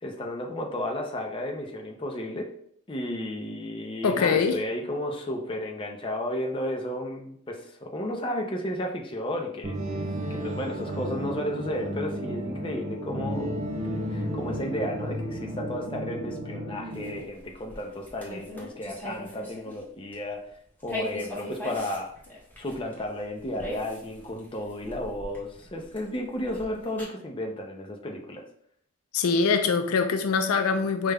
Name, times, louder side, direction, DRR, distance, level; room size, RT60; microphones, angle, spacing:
voice 1, 0.0-2.5 2.9-10.0 10.3-13.5 14.1-20.5 20.8-22.1 22.6-28.4, left 1 dB, 25° left, 1 dB, 0.5 m, -33 dB
voice 2, 4.0-4.6 29.1-31.1, left 5 dB, 85° left, 7 dB, 0.4 m, -23 dB
sound 1, 9.6-17.2, equal, 35° right, 0.5 m, -33 dB
sound 2, 16.9-19.8 20.1-20.3 20.8-27.0, left 1 dB, 10° left, 0.9 m, -40 dB
5.0 x 2.2 x 3.4 m, 0.65 s
head